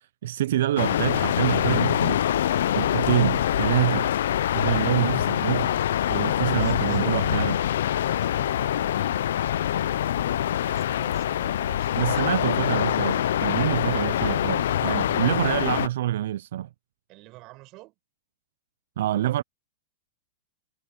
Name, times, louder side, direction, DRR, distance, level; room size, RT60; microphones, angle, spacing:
voice 1, 0.0-2.2 2.7-4.1 4.5-5.8 6.1-7.6 12.0-16.7 19.0-19.4, right 13 dB, 70° right, 0.3 m, -26 dB
sound 1, 0.8-15.9, left 11 dB, 75° left, 0.5 m, -24 dB
voice 2, 6.3-7.6 8.1-12.6 13.8-14.1 17.1-17.9, right 21 dB, 40° right, 5.9 m, -49 dB
hypercardioid pair, 140°, 0 cm